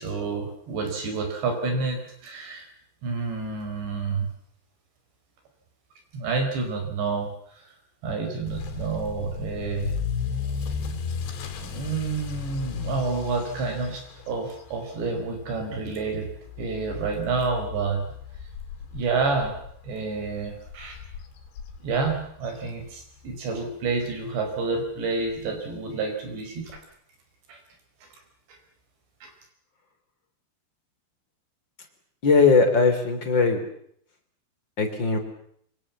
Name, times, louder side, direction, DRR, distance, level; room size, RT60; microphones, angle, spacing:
voice 1, 0.0-2.7 3.0-4.3 6.1-7.7 8.0-9.9 11.6-16.3 16.6-18.1 18.9-19.6 19.8-21.0 21.8-26.7 27.5-27.6 28.5-28.6 29.2-29.3, right 4 dB, 85° right, 5 dB, 7.3 m, -29 dB
Motor vehicle (road) / Accelerating revving vroom, 8.5-23.3 23.6-24.0 24.5-24.6 24.9-25.0 25.3-25.4 26.7-26.8, left 6 dB, 85° left, 4.7 m, -35 dB
voice 2, 32.2-33.6 34.8-35.2, left 4 dB, 30° left, 6 dB, 3.5 m, -19 dB
25.0 x 25.0 x 7.4 m, 0.67 s
omnidirectional pair, 4.9 m